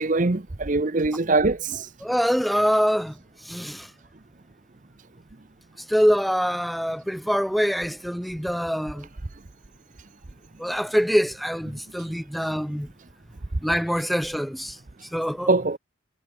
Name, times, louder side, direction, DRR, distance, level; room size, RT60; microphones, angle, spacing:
voice 1, 0.0-1.9 15.5-15.8, right 3 dB, 40° right, 0.8 m, -22 dB
voice 2, 2.0-3.1 3.5-3.9 5.9-9.1 10.6-12.9 13.6-14.8 15.1-15.5, equal, ahead, 3.4 m, -24 dB
head